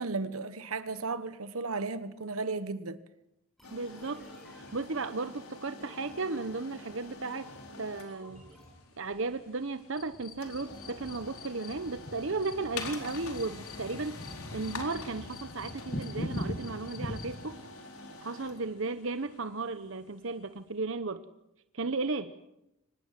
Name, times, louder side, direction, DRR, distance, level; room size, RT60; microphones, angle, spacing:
voice 1, 0.0-3.0, right 3 dB, 80° right, 1.3 m, -34 dB
sound 1, 3.6-20.5, left 3 dB, 90° left, 4.3 m, -47 dB
sound 2, 3.6-9.3, equal, ahead, 6.6 m, -57 dB
voice 2, 3.7-4.3 4.5-7.5 7.8-8.5 9.0-14.2 14.5-17.6 18.2-21.2 21.7-22.3, right 3 dB, 65° right, 0.9 m, -35 dB
sound 3, 9.9-17.5, left 1 dB, 40° left, 2.3 m, -41 dB
24.5 x 20.0 x 7.5 m
head